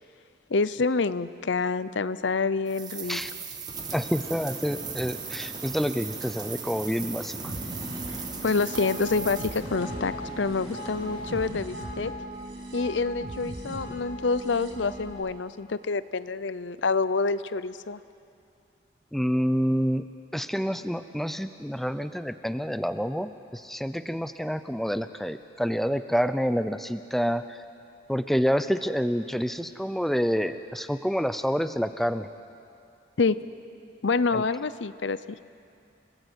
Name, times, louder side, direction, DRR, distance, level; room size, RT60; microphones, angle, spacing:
voice 1, 0.5-3.2 8.4-12.1 12.7-18.0 33.2-33.4 34.0-35.2, left 4 dB, 80° left, 15 dB, 0.7 m, -27 dB
sound 1, 2.7-9.6, right 6 dB, 20° right, 1.5 m, -38 dB
sound 2, 3.7-11.5, equal, 25° left, 3.9 m, -43 dB
voice 2, 3.9-7.5 19.1-20.0 20.3-27.6 28.1-32.3 34.3-34.4, equal, ahead, 10 dB, 0.6 m, -28 dB
sound 3, 7.5-15.1, right 1 dB, 70° right, 5.1 m, -38 dB
29.5 x 17.5 x 8.2 m, 2.5 s
head